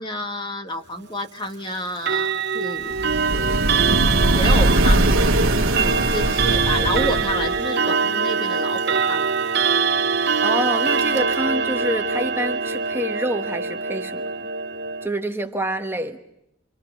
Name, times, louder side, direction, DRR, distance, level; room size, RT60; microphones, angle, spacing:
voice 1, 0.0-3.6 4.3-9.3 9.6-9.8, equal, 20° left, 6 dB, 1.4 m, -30 dB
Clock, 2.0-15.1, right 5 dB, 50° right, 0.8 m, -23 dB
sound 1, 2.9-7.6, right 1 dB, 75° right, 1.6 m, -21 dB
voice 2, 10.4-14.2 15.0-16.2, right 1 dB, 10° right, 5 dB, 1.3 m, -27 dB
29.0 x 25.5 x 5.9 m, 0.82 s
head